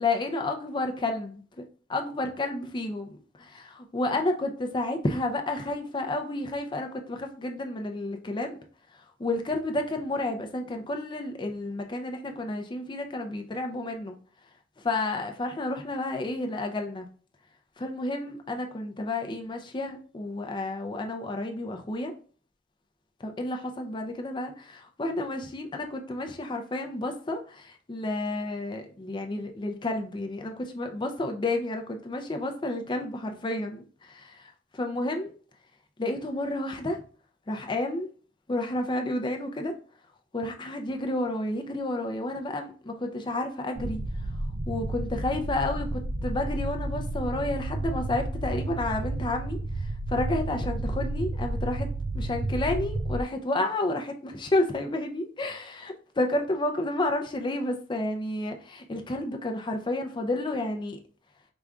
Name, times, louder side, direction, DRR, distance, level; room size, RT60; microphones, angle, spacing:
voice 1, 0.0-1.4 1.9-8.6 8.9-14.1 14.8-17.1 17.8-22.1 23.2-35.3 36.0-37.0 37.5-38.1 38.5-39.8 40.3-44.0 44.7-51.9 52.1-61.0, left 2 dB, 25° left, 4 dB, 0.5 m, -31 dB
sound 1, 43.8-53.2, right 2 dB, 40° right, 0.4 m, -31 dB
5.0 x 2.3 x 3.6 m, 0.42 s
head